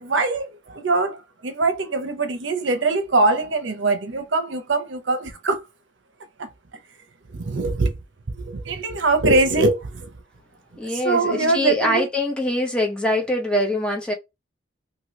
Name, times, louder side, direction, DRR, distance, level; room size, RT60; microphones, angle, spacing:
voice 1, 0.1-0.5 0.8-1.1 1.4-5.6 7.5-7.9 8.7-9.8 11.0-12.1, right 3 dB, 70° right, 0.7 m, -21 dB
voice 2, 10.8-14.1, left 1 dB, 5° left, 0.8 m, -23 dB
3.0 x 2.7 x 3.1 m
head